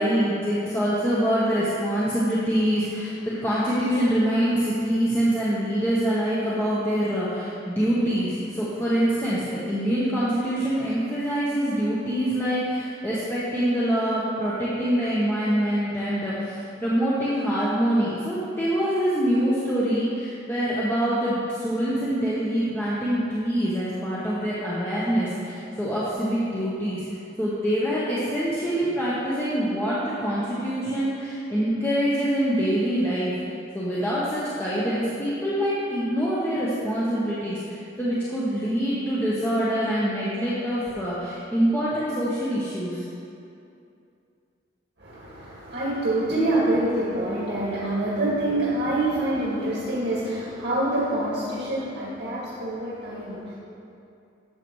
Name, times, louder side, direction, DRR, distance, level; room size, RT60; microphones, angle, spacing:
voice 1, 0.0-27.0 27.4-43.0, equal, 15° left, -9 dB, 1.1 m, -25 dB
voice 2, 45.0-53.5, right 1 dB, 75° right, -8 dB, 1.9 m, -26 dB
12.5 x 7.6 x 3.2 m, 2.7 s
head